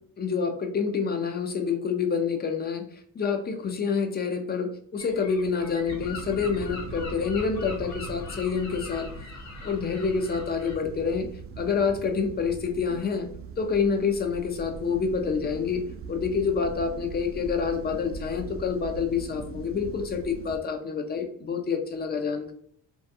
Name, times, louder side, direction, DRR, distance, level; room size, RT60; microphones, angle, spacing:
voice 1, 0.2-2.8 3.1-9.1 9.6-11.3 11.6-13.3 13.6-22.5, left 5 dB, 30° left, 5 dB, 0.5 m, -27 dB
Gull seagull, 5.0-10.8, left 2 dB, 65° left, 0.7 m, -41 dB
sound 1, 5.9-20.6, right 4 dB, 50° right, 0.4 m, -41 dB
2.4 x 2.3 x 2.7 m, 0.62 s
cardioid pair, 90°, 30 cm